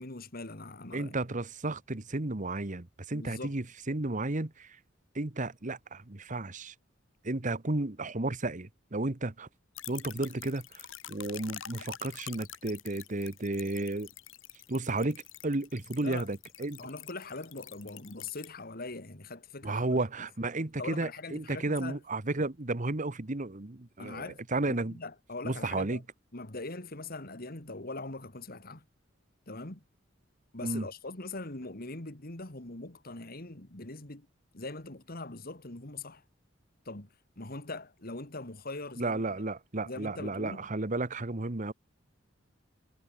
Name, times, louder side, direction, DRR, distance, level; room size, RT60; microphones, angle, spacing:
voice 1, 0.0-1.2 3.1-3.6 16.0-16.3 16.8-20.3 20.8-22.0 24.0-26.0 26.3-28.8 29.5-29.8 30.5-34.3 34.5-36.2 36.9-37.1 37.4-39.2 39.8-40.7, left 3 dB, 50° left, 2.6 m, -42 dB
voice 2, 0.9-4.8 5.1-6.7 7.2-9.5 9.9-14.1 14.7-16.8 19.6-25.0 25.4-26.0 30.6-30.9 39.0-41.7, right 2 dB, 40° right, 1.3 m, -33 dB
sound 1, 9.7-18.5, left 12 dB, 80° left, 3.1 m, -47 dB
head